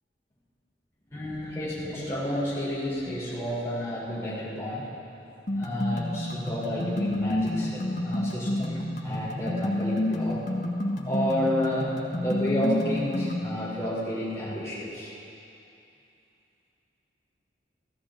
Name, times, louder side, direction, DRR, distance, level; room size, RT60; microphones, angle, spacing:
voice 1, 1.1-4.9 5.6-10.4 11.1-15.1, left 1 dB, 15° left, -8 dB, 3.8 m, -31 dB
sound 1, 5.5-13.5, left 1 dB, 45° left, 1.4 m, -29 dB
16.5 x 14.5 x 3.9 m, 2.7 s
head